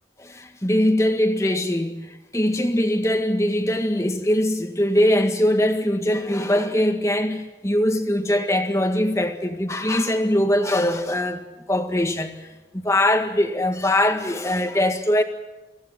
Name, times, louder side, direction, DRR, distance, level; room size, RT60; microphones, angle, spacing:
voice 1, 0.2-12.5 12.7-15.2, left 1 dB, 15° left, 1.8 m, -22 dB
24.0 x 16.0 x 9.4 m
head